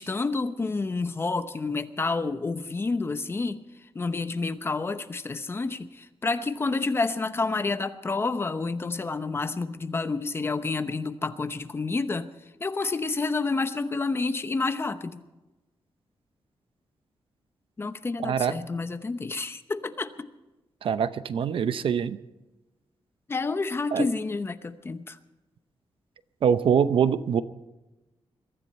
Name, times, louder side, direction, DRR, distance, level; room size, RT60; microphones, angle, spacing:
voice 1, 0.0-3.6 3.9-12.3 12.6-15.2 17.8-20.1 23.3-25.2, left 3 dB, 25° left, 10 dB, 0.9 m, -29 dB
voice 2, 18.2-18.6 20.8-22.2 23.9-24.1 26.4-27.4, right 7 dB, 65° right, 13 dB, 0.8 m, -24 dB
22.5 x 14.0 x 4.3 m, 1.1 s
wide cardioid pair, 160°, 10 cm